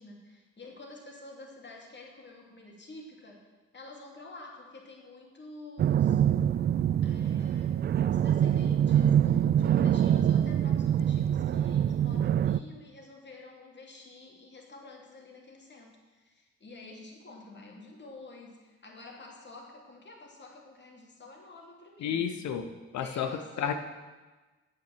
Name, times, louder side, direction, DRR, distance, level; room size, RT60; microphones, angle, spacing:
voice 1, 0.0-6.2 6.9-22.3 23.0-23.7, left 3 dB, 30° left, 0 dB, 2.7 m, -49 dB
sound 1, 5.8-12.6, right 10 dB, 30° right, 0.4 m, -25 dB
voice 2, 22.0-23.7, left 8 dB, 55° left, 8 dB, 1.0 m, -32 dB
10.0 x 9.1 x 6.1 m, 1.2 s
figure-of-eight pair, 40°, 35 cm